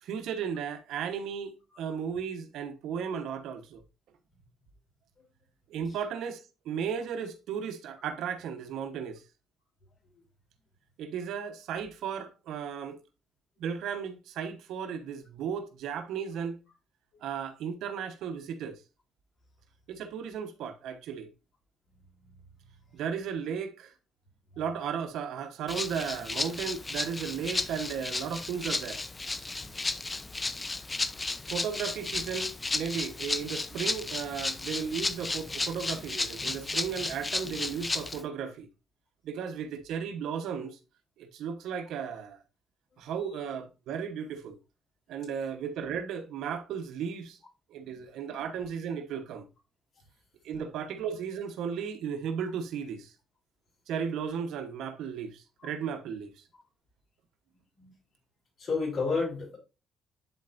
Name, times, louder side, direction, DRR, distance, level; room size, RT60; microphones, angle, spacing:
voice 1, 0.0-3.8 5.7-9.2 11.0-13.0 13.6-16.6 17.2-18.8 19.9-21.3 22.9-23.9 24.6-29.0 31.5-38.7 39.2-40.8 41.2-42.4 43.0-44.6 45.1-47.4 47.7-49.5 50.4-53.1 53.9-56.3, right 7 dB, 85° right, 1.0 m, -35 dB
Rattle (instrument), 25.7-38.2, left 3 dB, 20° left, 0.6 m, -34 dB
voice 2, 58.6-59.6, left 4 dB, 50° left, 4.0 m, -30 dB
10.0 x 4.3 x 2.5 m
cardioid pair, 90°, 0 cm